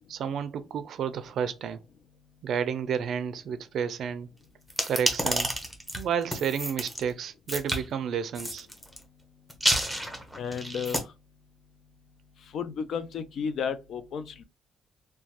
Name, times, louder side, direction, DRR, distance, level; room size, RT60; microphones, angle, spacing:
voice 1, 0.1-1.8 2.4-4.3 4.9-5.5 5.9-8.7, right 7 dB, 70° right, 0.4 m, -31 dB
sound 1, 4.7-7.0 7.5-7.8 8.4-9.0 9.5-11.0, equal, 5° left, 0.8 m, -29 dB
voice 2, 10.4-11.0 12.5-14.4, left 6 dB, 65° left, 0.4 m, -33 dB
2.9 x 2.1 x 2.8 m
cardioid pair, 90°, 0 cm